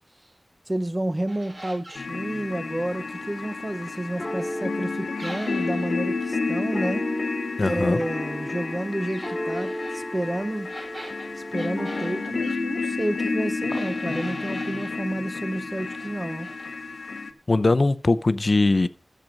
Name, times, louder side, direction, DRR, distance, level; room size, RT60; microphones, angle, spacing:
voice 1, 0.7-7.1 7.6-10.7 11.4-16.5, right 1 dB, 20° right, 0.8 m, -30 dB
sound 1, 1.3-2.1 5.2-6.0 9.1-10.0 10.6-12.6 13.7-15.0 15.5-16.1 16.4-16.7, right 1 dB, 50° right, 7.4 m, -42 dB
sound 2, 1.9-17.3, left 4 dB, 85° left, 1.3 m, -31 dB
sound 3, 2.8-12.3, left 1 dB, 20° left, 1.7 m, -36 dB
voice 2, 7.6-8.0 17.5-18.9, left 2 dB, 45° left, 0.7 m, -20 dB
13.5 x 7.7 x 5.2 m
wide cardioid pair, 80°, 0 cm